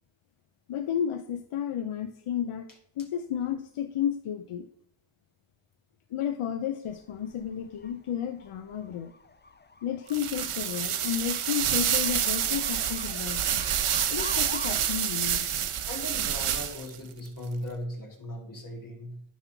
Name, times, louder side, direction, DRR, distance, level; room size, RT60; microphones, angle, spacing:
voice 1, 0.7-2.7 3.0-4.7 6.1-9.1 9.8-13.4 14.1-15.6, left 9 dB, 85° left, 8 dB, 0.7 m, -32 dB
sound 1, 6.9-14.8, left 4 dB, 20° left, 0.6 m, -45 dB
sound 2, 10.1-17.0, right 9 dB, 85° right, 0.8 m, -28 dB
voice 2, 15.8-19.2, left 1 dB, 40° left, 1 dB, 2.5 m, -38 dB
9.7 x 4.2 x 5.8 m, 0.67 s
cardioid pair, 55°, 49 cm